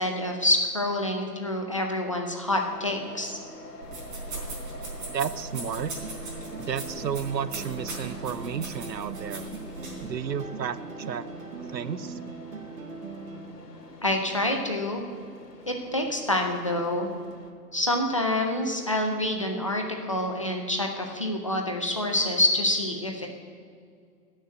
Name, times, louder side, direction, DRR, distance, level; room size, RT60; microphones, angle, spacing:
voice 1, 0.0-3.4 14.0-15.0 15.6-17.1 17.7-23.3, left 1 dB, 20° left, 2 dB, 0.6 m, -27 dB
sound 1, 2.7-17.5, left 2 dB, 70° left, 1.9 m, -45 dB
sound 2, 3.8-10.1, right 2 dB, 30° right, 4.0 m, -39 dB
voice 2, 5.1-5.9 6.6-9.5 10.0-11.3 11.7-12.2, right 8 dB, 85° right, 15 dB, 0.7 m, -32 dB
sound 3, 5.5-13.5, right 5 dB, 55° right, 1.4 m, -41 dB
15.5 x 6.5 x 7.6 m, 2.3 s
figure-of-eight pair, 150°, 49 cm